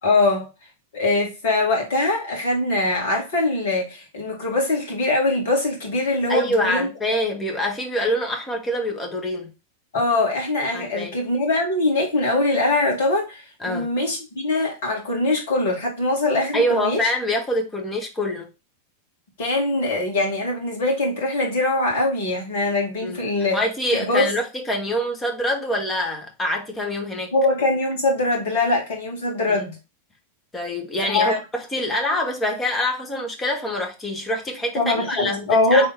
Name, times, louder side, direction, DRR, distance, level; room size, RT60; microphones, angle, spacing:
voice 1, 0.0-0.5 0.9-6.9 9.9-17.1 19.4-23.6 23.9-24.3 27.3-29.7 31.0-31.4 34.7-35.9, left 2 dB, 55° left, 2.1 m, -22 dB
voice 2, 6.3-9.5 10.7-11.1 13.6-13.9 16.5-18.5 23.0-23.2 23.5-27.3 29.5-29.6 30.5-35.9, equal, 15° left, 1.4 m, -25 dB
3.7 x 3.4 x 3.9 m
figure-of-eight pair, 90°, 0 cm